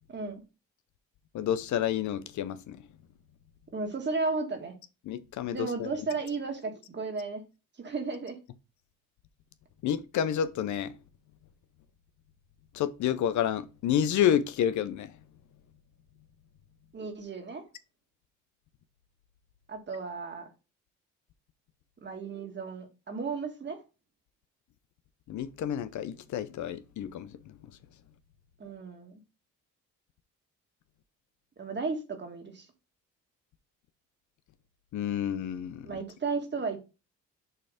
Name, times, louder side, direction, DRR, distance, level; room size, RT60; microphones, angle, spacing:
voice 1, 0.1-0.4 3.7-4.7 5.5-7.4 7.8-8.4 16.9-17.6 19.7-20.5 22.0-23.8 28.6-29.2 31.6-32.7 35.8-36.8, right 4 dB, 35° right, 1.7 m, -34 dB
voice 2, 1.3-2.9 5.0-5.9 9.8-11.0 12.7-15.2 25.3-27.7 34.9-36.0, left 9 dB, 70° left, 0.7 m, -30 dB
6.6 x 3.3 x 5.0 m
cardioid pair, 90°, 30 cm